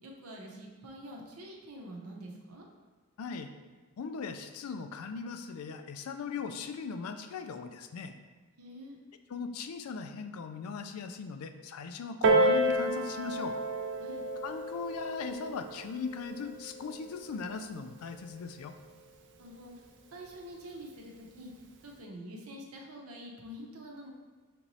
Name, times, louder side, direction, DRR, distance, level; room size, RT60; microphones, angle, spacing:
voice 1, 0.0-2.7 8.6-9.0 14.0-14.2 19.4-19.8 20.1-21.5 21.8-24.1, equal, 80° right, -1 dB, 0.8 m, -46 dB
voice 2, 3.2-3.5 4.0-8.1 9.3-13.6 14.4-18.7, left 5 dB, 80° left, 8 dB, 0.4 m, -39 dB
Piano, 12.2-17.4 18.3-18.4, right 1 dB, 55° right, 0.4 m, -30 dB
5.9 x 3.0 x 2.7 m, 1.3 s
head